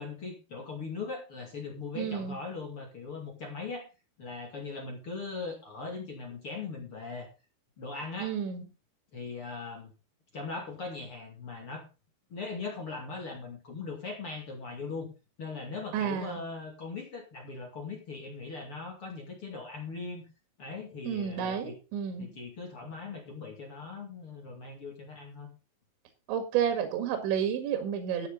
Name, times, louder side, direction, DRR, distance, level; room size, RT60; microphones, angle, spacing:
voice 1, 0.0-3.9 4.2-7.3 7.8-8.3 9.1-9.9 10.3-11.9 12.3-15.1 15.4-20.2 20.6-21.7 22.2-25.5, left 4 dB, 40° left, 1 dB, 2.1 m, -40 dB
voice 2, 2.0-2.4 8.2-8.6 15.9-16.4 21.1-22.3 26.3-28.3, right 8 dB, 70° right, 6 dB, 3.9 m, -31 dB
13.0 x 9.4 x 4.0 m, 0.29 s
omnidirectional pair, 5.8 m